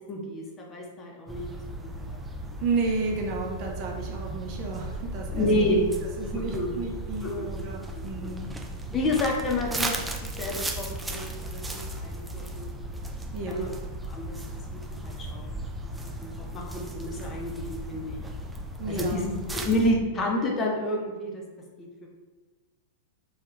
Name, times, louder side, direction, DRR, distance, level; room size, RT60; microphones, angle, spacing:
voice 1, 0.1-2.2 5.3-5.8 6.3-6.7 7.2-7.5 8.2-8.3 8.9-9.9 10.4-12.7 13.5-13.7 14.0-14.4 14.7-18.2 18.9-21.4 21.8-22.1, left 1 dB, 25° left, -2 dB, 0.7 m, -30 dB
sound 1, 1.3-20.0, right 1 dB, 10° right, 0.4 m, -36 dB
voice 2, 2.6-5.6 6.2-8.5 8.9-9.1 13.3-13.8 18.8-19.2, right 3 dB, 45° right, 0 dB, 0.6 m, -32 dB
3.3 x 2.3 x 3.0 m, 1.2 s
figure-of-eight pair, 100°, 0 cm